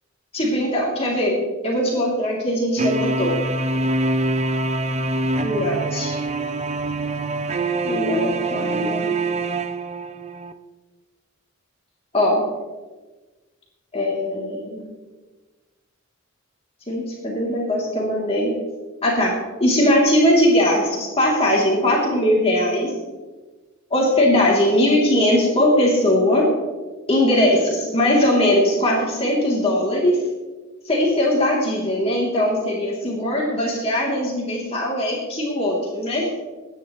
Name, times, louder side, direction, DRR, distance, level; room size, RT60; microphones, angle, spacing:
voice 1, 0.3-3.4 5.4-6.2 7.8-9.1 12.1-12.4 13.9-14.8 16.9-18.5 19.0-19.3 19.6-22.9 23.9-26.5 27.1-30.2 30.8-36.3, left 1 dB, 30° left, -3 dB, 3.0 m, -20 dB
sound 1, 2.8-10.5, right 2 dB, 30° right, 0.6 m, -24 dB
22.5 x 10.0 x 3.2 m, 1.2 s
head